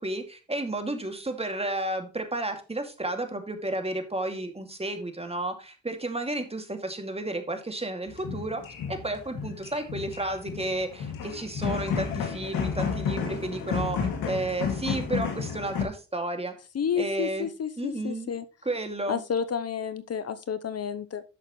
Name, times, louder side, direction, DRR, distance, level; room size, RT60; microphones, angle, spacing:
voice 1, 0.0-8.6 8.9-14.0 14.3-16.5 17.0-17.5 17.8-18.3 18.6-19.2, right 2 dB, 20° right, 2.3 m, -32 dB
sound 1, 8.1-15.8, left 6 dB, 80° left, 2.4 m, -31 dB
voice 2, 16.7-18.4 19.1-21.2, left 7 dB, 50° left, 0.8 m, -30 dB
10.5 x 6.6 x 3.1 m
supercardioid pair, 50°, 33 cm